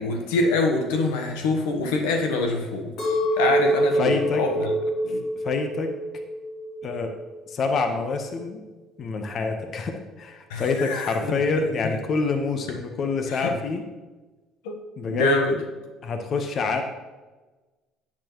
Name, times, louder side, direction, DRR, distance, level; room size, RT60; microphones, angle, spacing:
voice 1, 0.0-4.7 5.0-5.3 10.5-11.6 13.3-13.5 14.6-14.8 15.0-15.6, left 2 dB, 85° left, 3 dB, 1.2 m, -25 dB
Chink clink, 3.0-7.3 7.7-8.3, right 1 dB, 70° left, 3.3 m, -26 dB
voice 2, 4.0-4.4 5.1-5.9 6.8-7.1 7.5-8.6 9.0-13.8 15.0-15.4 16.0-16.8, left 4 dB, 50° left, 5 dB, 1.2 m, -27 dB
10.0 x 8.5 x 3.1 m, 1.2 s
supercardioid pair, 75°, 0 cm